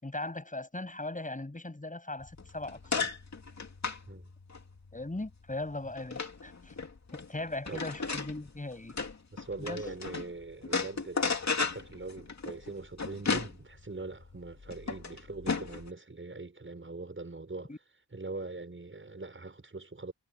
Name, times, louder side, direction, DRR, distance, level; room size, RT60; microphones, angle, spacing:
voice 1, 0.0-3.1 4.9-6.7 7.3-8.9 9.6-9.9 17.7-17.8, left 2 dB, 20° left, 8.0 m, -39 dB
sound 1, 2.2-10.3 10.6-15.9, left 4 dB, 45° left, 2.7 m, -35 dB
voice 2, 9.3-17.7 18.1-20.1, right 3 dB, 30° right, 6.7 m, -42 dB
wide cardioid pair, 135°, 39 cm